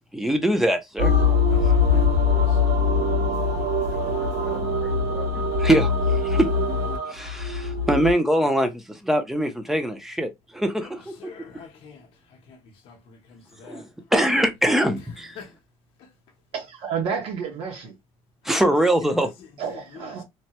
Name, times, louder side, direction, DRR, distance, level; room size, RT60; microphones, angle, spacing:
voice 1, 0.1-1.1 3.9-6.5 7.1-11.3 13.6-15.4 18.4-19.3, right 1 dB, 5° right, 0.5 m, -24 dB
sound 1, 1.0-8.1, left 4 dB, 80° right, 1.7 m, -22 dB
voice 2, 1.5-3.3 3.6-4.9 10.8-13.9 15.4-15.6 16.0-16.1 18.4-18.8 19.1-20.2, left 5 dB, 55° left, 0.7 m, -47 dB
voice 3, 16.5-18.0 19.6-20.2, right 6 dB, 55° right, 1.1 m, -30 dB
3.2 x 2.1 x 2.8 m
cardioid pair, 165°, 11 cm